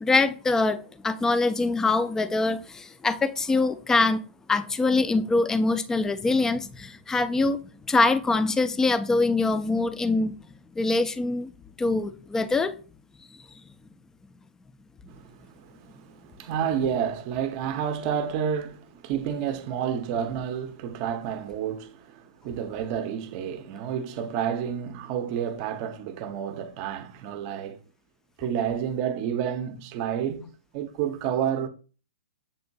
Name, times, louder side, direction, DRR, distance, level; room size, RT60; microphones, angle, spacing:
voice 1, 0.0-4.2 4.5-7.6 7.9-10.4 10.8-11.5 11.8-12.7, left 3 dB, 10° left, 0.3 m, -24 dB
voice 2, 15.1-27.8 28.4-30.4 30.7-31.7, right 8 dB, 40° right, 0.6 m, -30 dB
7.0 x 2.9 x 2.6 m
hypercardioid pair, 130°, 6 cm